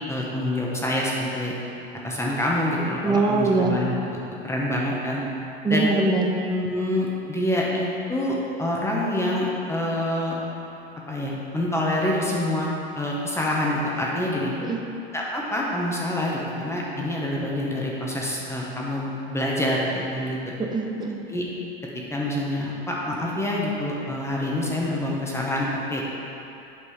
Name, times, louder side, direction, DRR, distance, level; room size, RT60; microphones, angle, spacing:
voice 1, 0.1-1.5 2.0-4.0 4.4-5.2 5.7-5.9 6.5-10.4 11.1-12.7 12.9-14.5 15.1-20.4 21.3-21.4 22.1-26.0, left 1 dB, 10° left, -4 dB, 1.4 m, -26 dB
voice 2, 3.0-3.8 5.6-6.3 14.6-14.8 20.6-21.2, right 3 dB, 15° right, 1 dB, 0.9 m, -22 dB
8.7 x 5.3 x 5.0 m, 2.8 s
hypercardioid pair, 105°, 30 cm